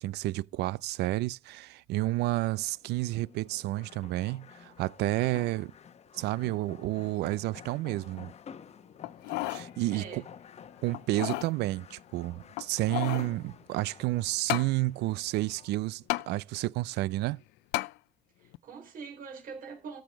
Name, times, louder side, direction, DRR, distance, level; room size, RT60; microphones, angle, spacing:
voice 1, 0.0-5.7 6.1-8.3 9.5-10.2 10.8-17.4, right 18 dB, 80° right, 0.4 m, -30 dB
sound 1, 2.0-15.7, left 7 dB, 40° left, 0.9 m, -51 dB
sound 2, 9.0-9.7 10.1-10.2 10.9-11.5 12.5-13.3 14.5-14.7 16.1-16.3 17.7-17.9 18.5-18.6, left 21 dB, 90° left, 0.4 m, -32 dB
voice 2, 9.9-10.2 18.4-20.0, right 5 dB, 55° right, 4.1 m, -43 dB
13.5 x 4.8 x 5.1 m
cardioid pair, 110°, 17 cm